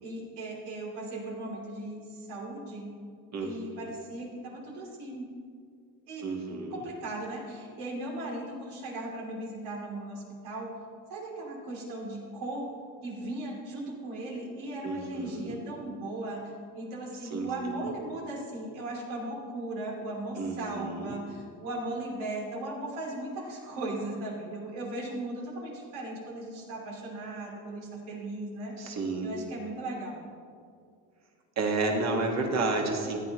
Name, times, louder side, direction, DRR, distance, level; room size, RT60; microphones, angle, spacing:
voice 1, 0.0-2.9 3.4-5.3 6.1-6.2 6.7-10.7 11.1-12.7 13.0-16.4 16.7-28.7 29.2-30.2, right 2 dB, 85° right, -2 dB, 3.1 m, -37 dB
voice 2, 3.3-3.8 6.2-6.8 14.8-15.6 17.3-17.9 20.3-21.2 28.8-29.3 31.6-33.2, right 3 dB, 40° right, 1 dB, 1.7 m, -31 dB
14.5 x 9.8 x 3.1 m, 2.3 s
cardioid pair, 130°, 39 cm